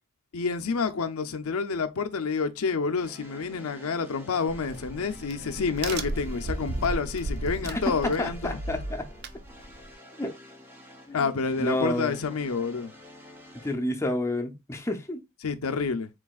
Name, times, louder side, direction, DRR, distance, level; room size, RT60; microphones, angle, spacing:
voice 1, 0.3-8.6 11.1-12.9 15.4-16.1, left 5 dB, 85° left, 0.6 m, -28 dB
sound 1, 2.9-13.7, left 1 dB, 10° right, 1.0 m, -49 dB
Crack, 4.5-9.9, right 2 dB, 50° right, 0.5 m, -35 dB
voice 2, 8.2-9.1 10.2-10.3 11.1-12.3 13.6-15.2, left 1 dB, 15° left, 0.6 m, -30 dB
4.8 x 3.9 x 2.4 m
head